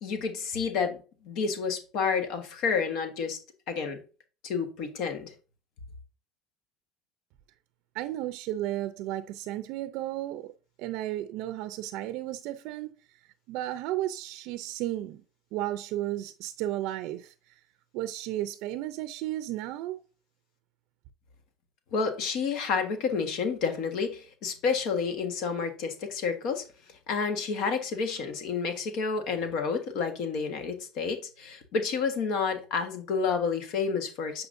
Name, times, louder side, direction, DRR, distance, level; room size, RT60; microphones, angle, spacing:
voice 1, 0.0-1.0 1.2-3.4 3.7-4.0 4.4-5.3 21.9-26.6 27.1-34.5, left 5 dB, 65° left, 1.4 m, -30 dB
voice 2, 7.9-10.5 10.8-12.9 13.5-15.2 15.5-17.6 17.9-20.0, right 14 dB, 70° right, 0.5 m, -33 dB
8.1 x 5.0 x 2.6 m
cardioid pair, 125°, 0 cm